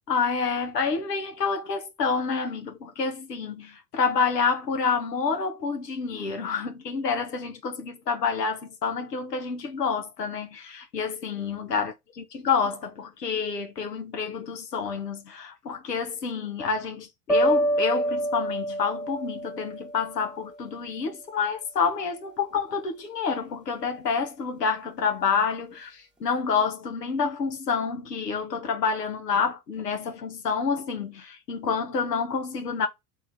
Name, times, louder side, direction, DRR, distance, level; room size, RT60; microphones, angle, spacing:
voice 1, 0.1-32.9, left 5 dB, 75° left, 1.2 m, -28 dB
sound 1, 17.3-20.4, right 1 dB, ahead, 1.1 m, -26 dB
3.6 x 2.8 x 4.5 m
figure-of-eight pair, 80°, 48 cm